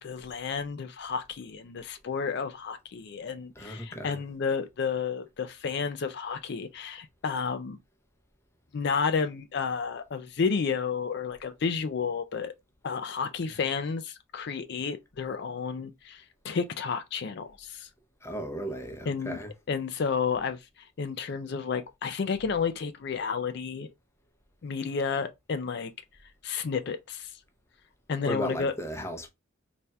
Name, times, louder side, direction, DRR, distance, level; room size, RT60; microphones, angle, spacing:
voice 1, 0.0-7.8 8.7-12.5 12.8-17.9 19.1-19.4 19.7-23.9 24.6-25.9 26.4-27.4 28.1-28.7, left 5 dB, 55° left, 0.4 m, -31 dB
voice 2, 3.6-4.2 18.2-19.5 28.3-29.3, equal, 15° left, 0.7 m, -35 dB
4.1 x 3.4 x 2.2 m
head